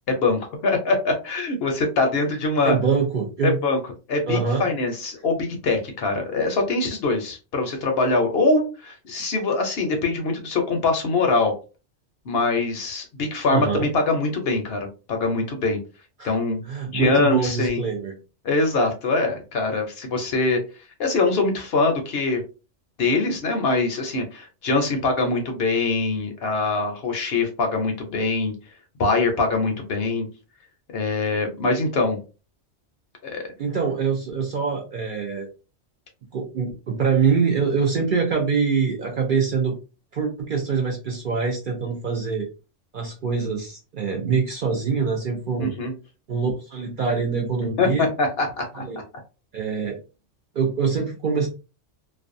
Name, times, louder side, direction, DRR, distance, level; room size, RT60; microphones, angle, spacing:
voice 1, 0.1-2.8 3.4-3.8 4.1-11.5 12.3-15.8 16.2-16.6 16.9-17.8 18.4-20.6 21.0-22.4 23.0-28.5 29.0-30.3 30.9-32.2 33.2-33.4 45.6-45.9 47.8-48.8, left 3 dB, 60° left, 4 dB, 0.7 m, -23 dB
voice 2, 2.6-3.6 4.3-4.7 13.5-13.9 16.2-16.4 16.6-18.1 33.6-35.5 36.3-39.7 40.1-42.5 42.9-45.7 46.3-48.1 48.7-49.0 49.5-50.0 50.5-51.5, right 5 dB, 60° right, 0 dB, 0.5 m, -24 dB
2.5 x 2.1 x 2.5 m, 0.32 s
omnidirectional pair, 1.3 m